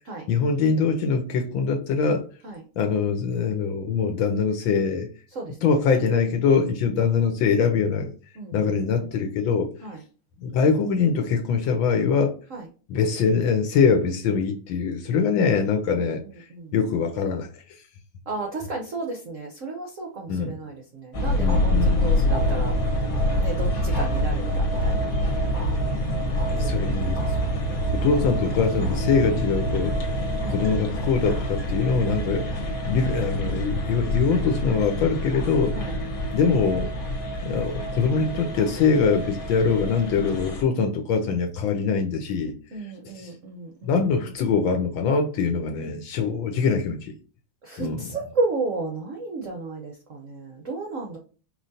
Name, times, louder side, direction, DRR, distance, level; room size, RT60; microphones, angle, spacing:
voice 1, 0.3-2.3 2.8-5.1 5.6-8.1 8.5-9.7 10.4-12.3 12.9-16.2 16.7-17.6 20.3-20.5 21.4-22.2 26.5-27.2 27.9-30.1 30.5-32.5 32.9-35.8 36.3-36.9 37.4-42.5 43.2-43.3 43.8-47.1 47.8-48.1, left 5 dB, 70° left, 1.4 m, -23 dB
voice 2, 5.3-5.8 6.3-6.4 8.4-9.1 9.8-10.0 12.5-12.7 16.2-16.7 18.3-22.8 23.4-25.1 26.6-27.6 30.3-30.6 35.7-36.0 42.7-44.1 47.6-51.2, right 3 dB, 65° right, 0.7 m, -33 dB
sound 1, 21.1-40.6, equal, 50° left, 1.3 m, -26 dB
5.0 x 3.1 x 2.6 m
omnidirectional pair, 2.4 m